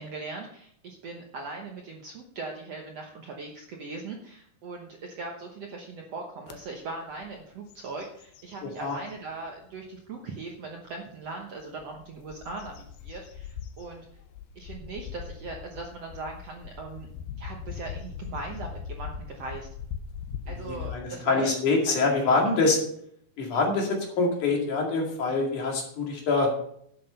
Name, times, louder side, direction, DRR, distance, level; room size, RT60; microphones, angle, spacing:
voice 1, 0.0-12.7 13.0-14.1 14.5-17.1 17.4-19.7 20.5-21.5 21.9-22.0 22.6-22.7, right 3 dB, 65° right, 1 dB, 1.6 m, -39 dB
sound 1, 6.5-6.6 7.1-7.4 7.7-9.2 9.8-9.9 11.6-21.0, left 7 dB, 85° left, 2.8 m, -40 dB
voice 2, 8.6-9.0 20.5-22.8 23.4-26.5, left 3 dB, 55° left, 0 dB, 3.4 m, -25 dB
11.0 x 8.0 x 5.5 m, 0.68 s
omnidirectional pair, 4.4 m